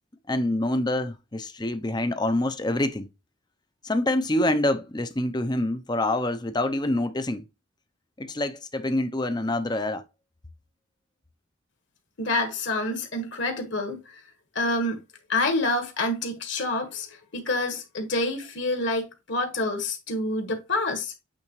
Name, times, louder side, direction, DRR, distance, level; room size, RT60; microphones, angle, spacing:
voice 1, 0.3-3.1 3.8-7.5 8.2-10.0, left 1 dB, 20° left, 0.6 m, -26 dB
voice 2, 12.2-14.2 14.5-15.0 15.3-21.1, left 2 dB, 60° left, 1.6 m, -27 dB
8.7 x 3.5 x 3.2 m
head